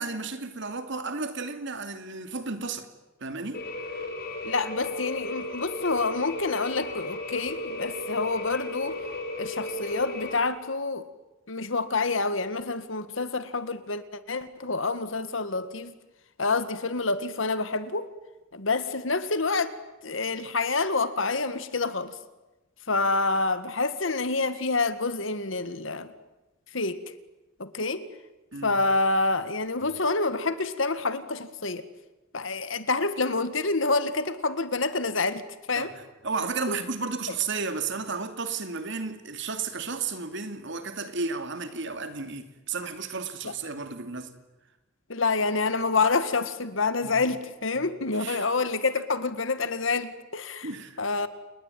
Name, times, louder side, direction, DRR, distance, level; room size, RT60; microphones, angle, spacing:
voice 1, 0.0-2.9 3.2-3.6 28.5-28.8 35.7-44.3 47.0-47.2 47.7-47.8 48.1-48.5 50.6-51.0, right 4 dB, 65° right, 8 dB, 2.7 m, -33 dB
sound 1, 3.5-10.4, left 2 dB, 50° left, 4.3 m, -35 dB
voice 2, 4.4-9.0 9.4-11.1 11.5-15.9 16.4-18.1 18.5-19.7 20.0-22.2 22.9-26.1 26.7-27.0 27.6-28.1 28.6-31.8 32.3-35.4 35.7-35.9 36.7-36.8 43.4-43.5 45.1-50.7 51.0-51.3, left 3 dB, 70° left, 12 dB, 1.9 m, -27 dB
29.5 x 20.5 x 9.3 m, 1.0 s
head